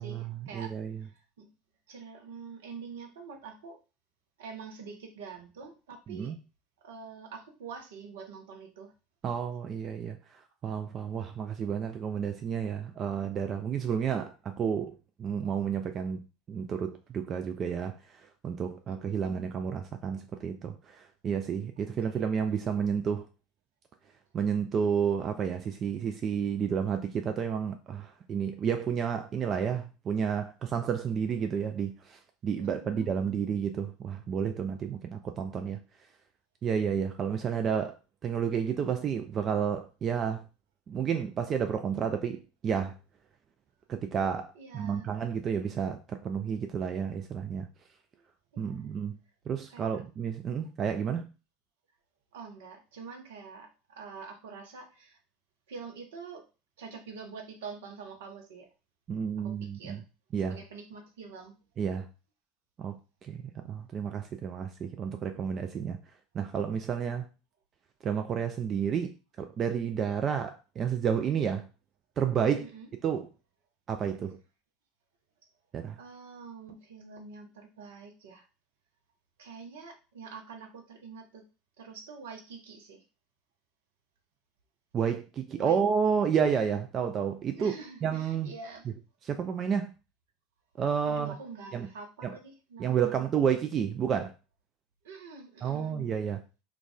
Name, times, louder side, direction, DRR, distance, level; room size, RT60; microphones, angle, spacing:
voice 1, 0.0-0.7 1.0-1.5 1.9-3.8 4.4-6.3 6.8-8.9 11.2-11.3 18.9-19.4 22.1-22.2 32.6-33.3 44.5-45.1 48.1-48.2 48.5-48.9 49.7-50.0 52.3-55.2 55.7-56.5 56.8-58.7 59.4-60.0 60.4-61.5 72.6-72.9 76.0-78.5 79.4-81.5 81.8-83.0 85.5-85.8 87.5-88.9 91.0-93.1 95.0-96.0, right 5 dB, 70° right, 0.6 m, -46 dB
voice 2, 0.5-0.9 6.1-6.3 9.2-10.2 10.6-14.9 15.2-16.2 16.5-16.9 17.1-18.0 18.4-23.3 24.3-35.8 36.6-37.9 38.2-40.4 40.9-42.9 43.9-47.7 48.6-49.2 49.5-51.3 59.1-60.0 60.3-60.6 61.8-62.1 62.8-62.9 63.3-66.0 66.3-67.3 68.0-71.7 72.2-72.7 73.0-73.3 73.9-74.4 75.7-76.0 84.9-87.7 88.0-88.5 89.2-89.9 90.8-91.3 91.7-91.9 92.8-94.3 95.6-96.4, right 7 dB, 35° right, 0.3 m, -30 dB
2.3 x 2.2 x 3.8 m
figure-of-eight pair, 70°, 0 cm